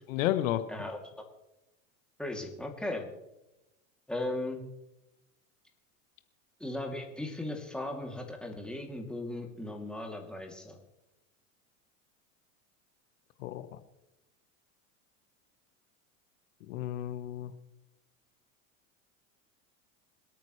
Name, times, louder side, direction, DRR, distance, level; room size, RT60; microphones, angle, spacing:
voice 1, 0.1-0.6 13.4-13.8 16.7-17.5, left 13 dB, 75° left, 10 dB, 1.2 m, -32 dB
voice 2, 2.2-3.0 4.1-4.6 6.6-10.8, left 1 dB, ahead, 1 dB, 2.7 m, -37 dB
27.5 x 9.1 x 3.2 m, 0.95 s
hypercardioid pair, 105°, 40 cm